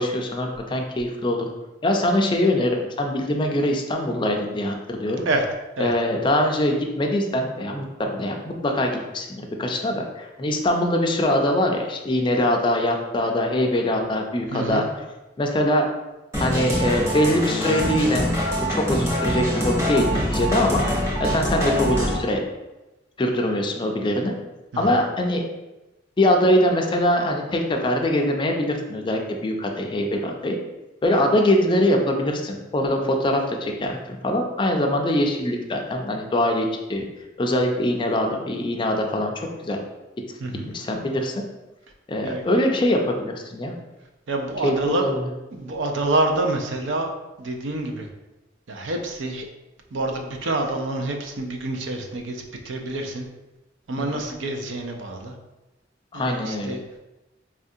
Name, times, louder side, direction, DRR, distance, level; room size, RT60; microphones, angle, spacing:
voice 1, 0.0-1.5 1.8-5.3 5.8-14.8 15.4-15.9 16.4-20.8 21.2-22.4 23.2-24.3 24.8-25.4 26.2-30.6 31.0-37.0 37.4-39.3 39.6-39.8 40.7-41.4 42.1-43.7 44.6-45.3 54.0-54.2 56.1-56.8, left 1 dB, 25° left, 2 dB, 0.4 m, -23 dB
voice 2, 14.5-14.9 24.7-25.0 40.4-40.7 42.2-42.4 44.3-45.1 45.5-47.1 47.4-48.1 48.7-49.5 49.9-53.3 53.9-55.3 56.1-56.8, right 2 dB, 75° right, 4 dB, 0.5 m, -27 dB
sound 1, 16.3-22.2, equal, 15° right, 0.9 m, -24 dB
4.3 x 2.4 x 2.6 m, 1.0 s
head